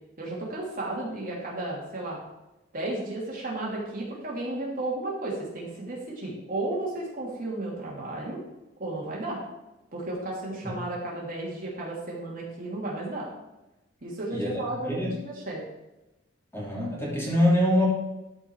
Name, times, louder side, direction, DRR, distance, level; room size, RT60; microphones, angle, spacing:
voice 1, 0.2-2.2 2.7-8.4 8.8-9.4 9.9-13.3 14.0-15.6, right 2 dB, 45° right, -4 dB, 2.8 m, -33 dB
voice 2, 14.3-14.6 14.9-15.1 16.5-17.9, left 1 dB, 15° left, -5 dB, 2.8 m, -24 dB
13.0 x 5.0 x 4.7 m, 0.99 s
head